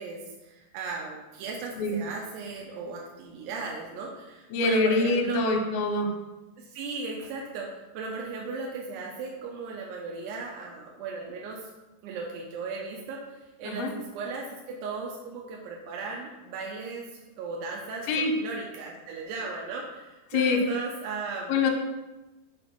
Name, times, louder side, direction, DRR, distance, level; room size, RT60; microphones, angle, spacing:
voice 1, 0.0-5.6 6.6-11.7 12.0-21.6, right 4 dB, 85° right, -2 dB, 2.8 m, -37 dB
voice 2, 4.5-6.1 13.7-13.9 18.1-18.3 20.3-20.6 21.5-21.7, left 3 dB, 80° left, 2 dB, 2.6 m, -24 dB
7.0 x 3.0 x 5.7 m, 1.1 s
omnidirectional pair, 4.7 m